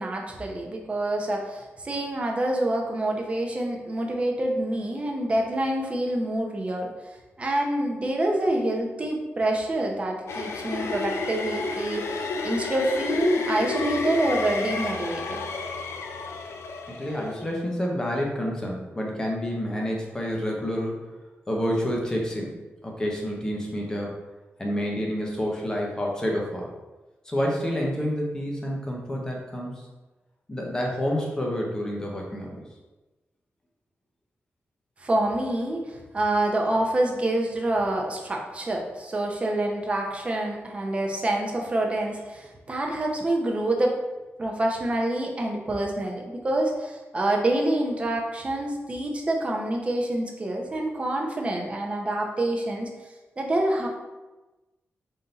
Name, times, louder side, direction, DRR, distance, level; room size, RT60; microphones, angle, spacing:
voice 1, 0.0-6.9 7.4-15.4 35.0-44.0 44.4-52.9 53.4-53.9, right 1 dB, 25° right, 0 dB, 0.6 m, -27 dB
sound 1, 10.3-17.6, left 3 dB, 85° left, 0.4 m, -31 dB
voice 2, 16.9-21.0 21.5-24.1 24.6-26.7 27.3-29.9 30.5-32.6, equal, 15° left, -2 dB, 0.8 m, -29 dB
3.7 x 2.7 x 3.9 m, 1.1 s
wide cardioid pair, 145°, 4 cm